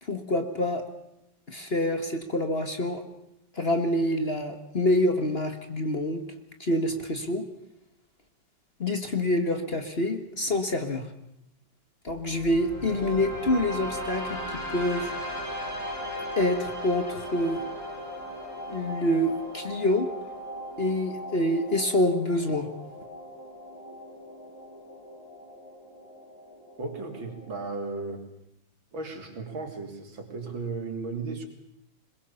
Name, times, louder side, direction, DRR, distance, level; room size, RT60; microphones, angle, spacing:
voice 1, 0.0-0.9 1.5-3.0 3.5-6.2 6.6-7.4 8.8-11.1 12.0-15.1 16.4-17.6 18.7-20.1 20.8-22.7, left 1 dB, 30° left, 7 dB, 1.7 m, -26 dB
sound 1, 12.1-28.1, equal, 65° left, 7.6 m, -38 dB
voice 2, 26.8-28.2 28.9-31.5, right 3 dB, 75° right, 4 dB, 3.9 m, -35 dB
21.5 x 21.5 x 7.1 m, 0.84 s
omnidirectional pair, 2.2 m